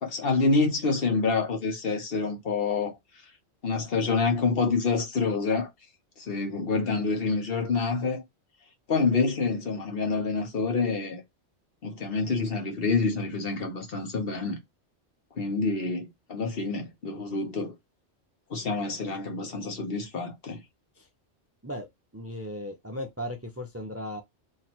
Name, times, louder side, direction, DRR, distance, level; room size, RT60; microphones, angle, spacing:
voice 1, 0.0-2.9 3.6-5.7 6.2-8.2 8.9-11.2 11.8-14.6 15.4-17.7 18.5-20.6, left 4 dB, 55° left, 1.2 m, -27 dB
voice 2, 22.1-24.2, equal, 15° right, 0.5 m, -36 dB
3.0 x 2.8 x 4.2 m
omnidirectional pair, 1.2 m